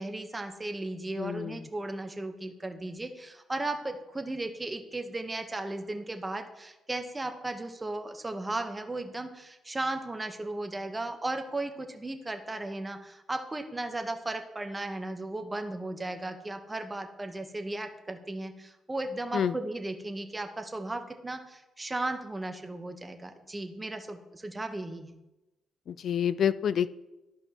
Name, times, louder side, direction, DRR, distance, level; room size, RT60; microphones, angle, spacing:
voice 1, 0.0-25.2, right 2 dB, 20° right, 6 dB, 0.9 m, -36 dB
voice 2, 1.2-1.7 19.3-19.6 25.9-26.9, left 8 dB, 60° left, 15 dB, 0.3 m, -28 dB
13.0 x 5.2 x 2.9 m, 0.98 s
cardioid pair, 90°, 0 cm